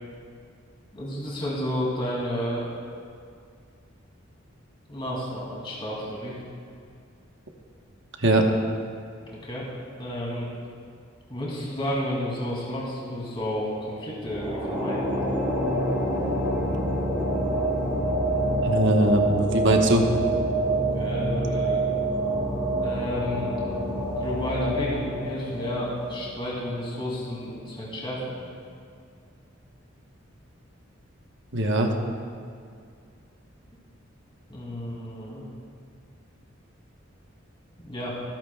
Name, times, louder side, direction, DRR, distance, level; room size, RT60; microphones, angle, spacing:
voice 1, 0.9-2.7 4.9-6.4 9.3-9.7 10.0-10.5 11.3-15.1 20.8-21.8 22.8-23.5 24.2-28.4 34.5-35.4 37.8-38.2, equal, 25° left, -5 dB, 2.6 m, -31 dB
sound 1, 14.2-26.8, right 1 dB, 5° right, 2.5 m, -27 dB
voice 2, 18.6-20.1 31.5-31.9, right 1 dB, 65° right, 2 dB, 1.1 m, -21 dB
23.5 x 9.0 x 2.3 m, 2.3 s
head